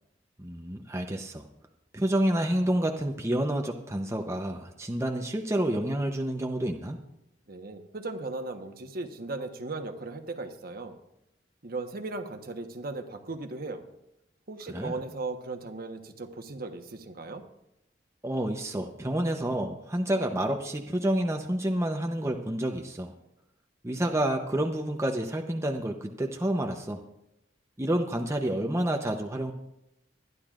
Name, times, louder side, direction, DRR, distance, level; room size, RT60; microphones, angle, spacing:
voice 1, 0.4-1.4 1.9-7.0 14.7-15.0 18.2-23.1 23.8-27.0 27.8-29.5, right 1 dB, 15° right, 2 dB, 0.8 m, -29 dB
voice 2, 7.5-11.0 11.6-13.8 14.5-17.4, right 3 dB, 55° right, 6 dB, 1.2 m, -37 dB
23.5 x 11.0 x 2.5 m, 0.85 s
head